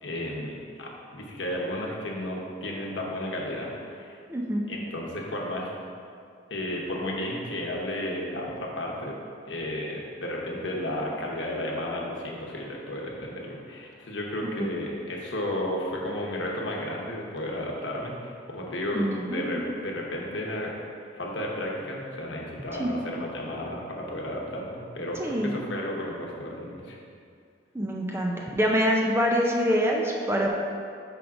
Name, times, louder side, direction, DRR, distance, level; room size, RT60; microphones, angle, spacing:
voice 1, 0.0-4.2 4.7-5.7 6.5-9.2 9.5-20.7 21.1-27.0, left 1 dB, 75° left, -2 dB, 1.0 m, -33 dB
voice 2, 4.3-4.6 14.4-14.7 18.9-19.6 22.8-22.9 25.2-25.5 27.7-30.5, equal, 15° right, -1 dB, 0.4 m, -25 dB
5.2 x 3.7 x 5.8 m, 2.4 s
head